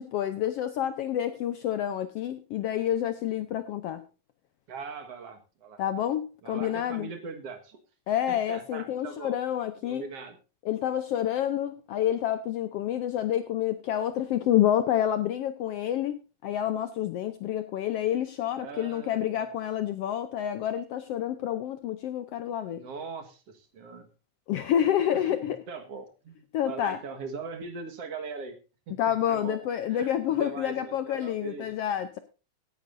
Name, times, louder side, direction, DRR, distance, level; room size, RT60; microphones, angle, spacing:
voice 1, 0.0-4.0 5.8-7.1 8.1-10.0 10.6-22.8 24.5-25.6 26.5-27.0 29.0-32.2, left 11 dB, 75° left, 11 dB, 1.5 m, -28 dB
voice 2, 4.7-5.8 6.4-7.8 8.3-9.3 9.8-10.4 18.6-19.5 22.7-24.1 25.1-28.6 28.9-29.6 29.9-31.7, right 4 dB, 55° right, 6 dB, 2.4 m, -41 dB
16.5 x 10.5 x 2.5 m, 0.32 s
omnidirectional pair, 3.4 m